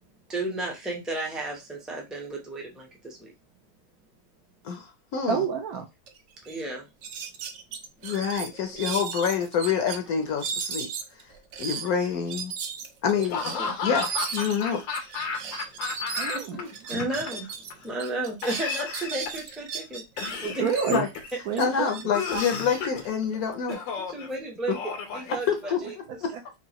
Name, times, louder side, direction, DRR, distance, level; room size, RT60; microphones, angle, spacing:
voice 1, 0.3-3.3 6.5-6.8 13.2-13.3 13.6-13.7 16.9-17.5 17.8-20.0 20.4-20.6 23.7-23.8 24.1-24.8 25.1-25.9, right 2 dB, ahead, 0.4 m, -33 dB
voice 2, 4.6-5.5 8.0-10.9 11.6-12.5 13.0-13.6 13.8-14.8 16.6-16.7 20.6-21.1 21.6-23.8 24.7-24.8 25.5-26.3, left 7 dB, 65° left, 1.0 m, -27 dB
voice 3, 5.3-5.8 16.2-16.6 16.9-17.0 20.6-21.1 21.5-21.9 22.3-22.4 26.3-26.6, right 7 dB, 65° right, 1.0 m, -28 dB
sound 1, 6.1-6.2 6.4-6.6 7.0-10.0 10.4-17.7 18.0-20.3 20.7-23.5, right 6 dB, 85° right, 0.6 m, -36 dB
Laughter / Cough, 13.3-16.6 16.9-17.7 18.4-19.5 20.2-21.4 22.1-23.0 23.7-24.3 24.7-25.9, left 5 dB, 85° left, 1.5 m, -33 dB
4.6 x 2.5 x 2.9 m
omnidirectional pair, 1.9 m